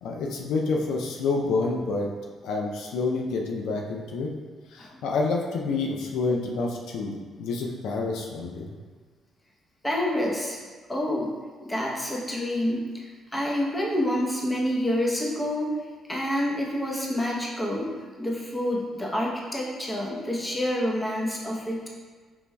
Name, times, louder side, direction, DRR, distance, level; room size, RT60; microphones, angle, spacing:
voice 1, 0.0-2.1 2.4-4.3 4.7-8.8, left 3 dB, 85° left, 0 dB, 0.4 m, -28 dB
voice 2, 9.8-10.6 10.9-11.3 11.6-15.7 16.1-17.9 18.2-21.9, left 1 dB, 15° left, -3 dB, 0.8 m, -28 dB
5.4 x 3.0 x 2.2 m, 1.5 s
cardioid pair, 90°, 0 cm